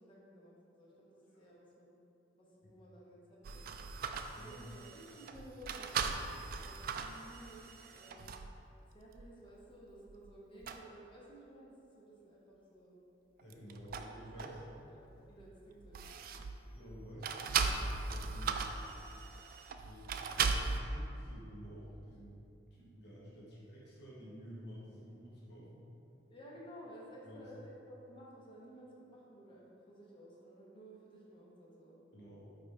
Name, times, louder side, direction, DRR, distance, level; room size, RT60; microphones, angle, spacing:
voice 1, 0.0-2.0 2.4-3.7 4.3-6.1 6.6-8.3 8.9-13.0 14.3-16.2 26.3-32.0, right 1 dB, 30° left, -5 dB, 0.9 m, -55 dB
sound 1, 3.4-8.6 9.2-9.3 9.9-10.3 10.6-10.8 13.4-14.9 15.2-16.7 17.2-20.8, right 5 dB, 50° right, 0.3 m, -38 dB
voice 2, 4.3-4.6 13.4-14.8 16.7-18.6 19.8-22.4 22.7-25.8 27.2-27.5 32.1-32.5, equal, 60° left, -7 dB, 1.4 m, -51 dB
5.3 x 4.1 x 4.8 m, 2.7 s
head